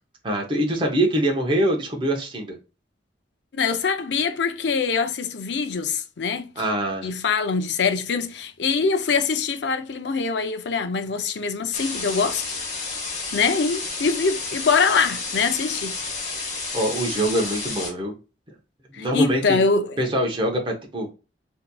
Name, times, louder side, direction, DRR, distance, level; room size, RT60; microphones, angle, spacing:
voice 1, 0.2-2.6 6.6-7.1 16.7-18.1 18.9-19.6 20.0-21.1, right 1 dB, 25° right, 0.7 m, -24 dB
voice 2, 3.5-6.5 7.0-12.4 13.3-15.9 18.9-20.0, left 5 dB, 65° left, 0.5 m, -23 dB
sound 1, 11.7-17.9, left 4 dB, 40° left, 1.1 m, -31 dB
4.0 x 2.7 x 2.2 m
head